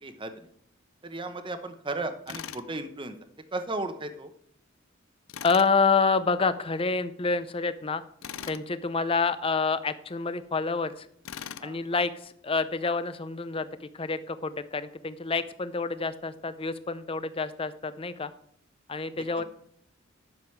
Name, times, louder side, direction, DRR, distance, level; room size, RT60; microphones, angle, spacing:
voice 1, 0.0-0.5 1.0-3.2 3.5-4.3 8.4-8.5 11.6-11.8 19.4-19.5, right 2 dB, 25° right, 8 dB, 0.9 m, -35 dB
Tools, 2.3-2.7 5.3-5.7 8.2-8.6 11.2-11.7, left 9 dB, 85° left, 0.5 m, -39 dB
voice 2, 5.4-8.0 8.5-11.1 11.6-18.3 18.9-19.4, left 4 dB, 30° left, 13 dB, 0.6 m, -28 dB
11.5 x 7.0 x 4.6 m, 0.66 s
head